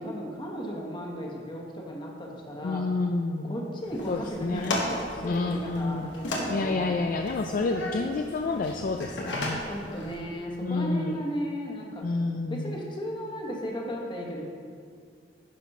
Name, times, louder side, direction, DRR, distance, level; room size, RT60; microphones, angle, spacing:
voice 1, 0.0-2.9 3.4-7.0 9.6-12.1 12.5-14.4, equal, 25° left, -1 dB, 1.3 m, -35 dB
voice 2, 2.6-3.6 4.1-4.8 5.2-6.1 6.5-9.6 10.6-11.2 12.0-12.8, left 3 dB, 50° left, 4 dB, 0.3 m, -29 dB
sound 1, 3.8-10.2, left 1 dB, 85° left, 1.4 m, -35 dB
10.5 x 4.2 x 5.5 m, 2.2 s
head